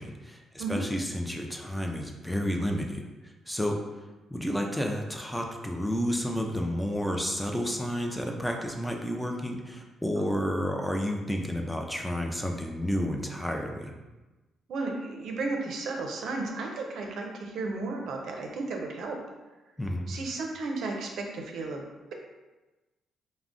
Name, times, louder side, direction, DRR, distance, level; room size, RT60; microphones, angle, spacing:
voice 1, 0.0-3.8 4.3-13.9 19.8-20.1, equal, 5° left, 1 dB, 0.4 m, -31 dB
voice 2, 14.7-19.2 20.1-21.8, right 3 dB, 70° right, 1 dB, 0.5 m, -34 dB
2.4 x 2.0 x 3.7 m, 1.1 s
cardioid pair, 90°, 0 cm